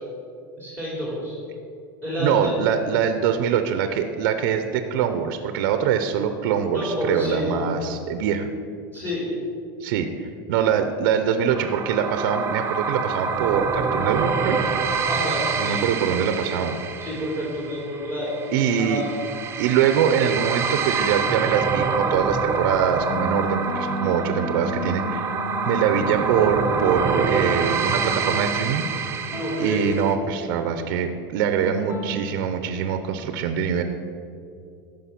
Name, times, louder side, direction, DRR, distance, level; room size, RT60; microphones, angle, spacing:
voice 1, 0.6-1.4 2.0-2.6 6.7-7.6 8.9-9.3 15.1-15.8 16.3-16.4 17.0-18.3 18.8-19.2 29.4-29.9, left 1 dB, 15° left, -6 dB, 3.0 m, -29 dB
voice 2, 2.2-8.5 9.8-14.6 15.6-16.7 18.5-19.0 19.5-25.4 25.7-28.9 29.6-33.8, right 8 dB, 70° right, 8 dB, 0.7 m, -23 dB
sound 1, 11.5-30.1, right 5 dB, 20° right, 0.9 m, -26 dB
sound 2, 23.1-29.0 29.3-30.5 31.7-32.2, equal, 35° left, 1.3 m, -32 dB
13.5 x 5.4 x 5.9 m, 2.5 s
supercardioid pair, 140°, 11 cm